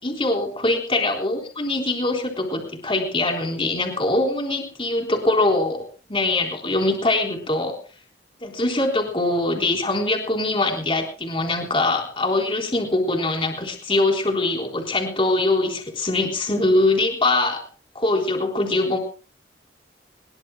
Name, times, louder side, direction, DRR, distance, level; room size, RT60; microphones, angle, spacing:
voice 1, 0.0-7.8 8.4-17.6 17.9-19.0, left 2 dB, 30° left, 3 dB, 3.9 m, -23 dB
25.0 x 22.0 x 2.3 m, 0.38 s
head